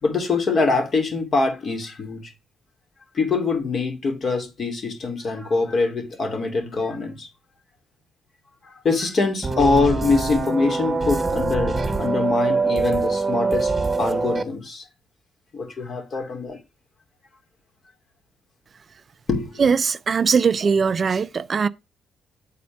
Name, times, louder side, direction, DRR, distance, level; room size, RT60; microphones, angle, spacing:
voice 1, 0.0-2.3 3.1-7.3 8.6-13.7 14.0-14.8 15.5-16.6 19.3-19.6, left 4 dB, 50° left, 2.5 m, -24 dB
sound 1, 9.4-14.4, right 3 dB, 25° right, 1.0 m, -23 dB
voice 2, 19.6-21.7, right 5 dB, 40° right, 0.4 m, -20 dB
7.4 x 4.3 x 5.9 m
cardioid pair, 90°, 0 cm